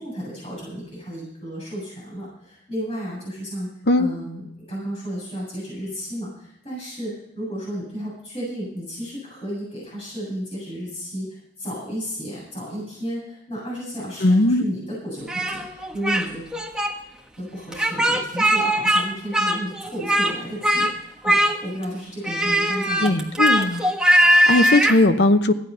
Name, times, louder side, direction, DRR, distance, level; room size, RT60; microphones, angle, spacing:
voice 1, 0.0-3.7 3.9-16.4 17.4-23.2, equal, 35° left, -6 dB, 7.5 m, -33 dB
voice 2, 14.2-14.6 23.0-23.9 24.2-25.5, left 2 dB, 70° left, 10 dB, 0.9 m, -18 dB
Speech, 15.3-16.2 16.5-16.9 17.7-19.0 19.3-20.3 20.6-20.9 21.2-21.8 22.2-25.0, equal, 5° right, 1.3 m, -20 dB
14.5 x 11.0 x 5.6 m, 0.76 s
head